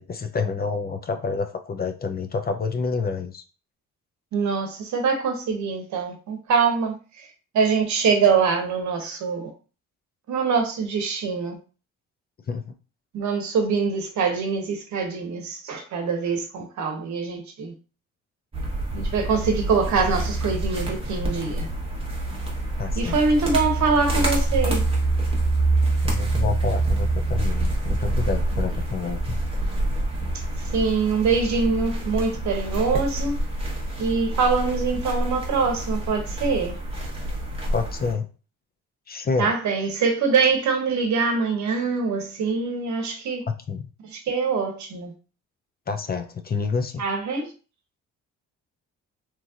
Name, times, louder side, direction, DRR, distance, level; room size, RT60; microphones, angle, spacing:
voice 1, 0.0-3.4 12.5-12.7 22.8-23.2 26.0-29.4 37.7-38.3 39.1-39.5 43.5-43.9 45.9-47.0, left 4 dB, 30° left, 0.4 m, -28 dB
voice 2, 4.3-7.3 7.5-9.5 10.3-11.6 13.1-17.7 18.9-21.7 23.0-24.9 30.7-33.4 34.0-36.8 39.4-43.4 44.0-45.1 47.0-47.5, right 5 dB, 70° right, 0.9 m, -24 dB
sound 1, 18.5-38.1, right 2 dB, 20° right, 1.1 m, -26 dB
3.0 x 2.6 x 2.4 m
cardioid pair, 90°, 30 cm